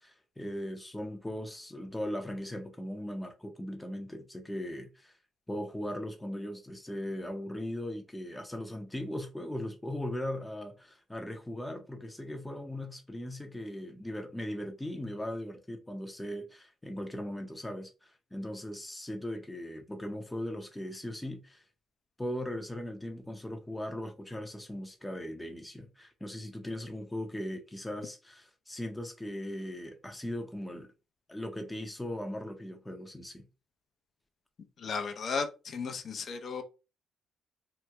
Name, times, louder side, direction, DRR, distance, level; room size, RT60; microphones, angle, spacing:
voice 1, 0.0-5.2 5.5-21.6 22.2-30.9 31.3-33.5, left 1 dB, 10° left, 0.6 m, -39 dB
voice 2, 34.8-36.6, left 5 dB, 55° left, 0.6 m, -35 dB
2.9 x 2.1 x 3.4 m
cardioid pair, 90°, 0 cm